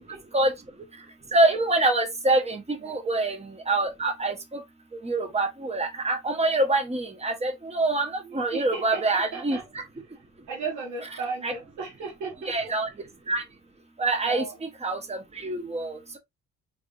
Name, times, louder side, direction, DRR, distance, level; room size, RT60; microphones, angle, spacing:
voice 1, 1.3-3.4 3.7-4.3 5.0-8.1 8.3-9.6 11.4-11.5 12.5-12.9 13.3-13.4 14.0-14.4 14.8-15.2 15.4-16.2, right 2 dB, 20° right, 1.1 m, -25 dB
voice 2, 8.2-9.7 10.5-12.7 14.2-14.5, right 4 dB, 75° right, 1.4 m, -35 dB
3.5 x 3.4 x 2.5 m
cardioid pair, 90°, 30 cm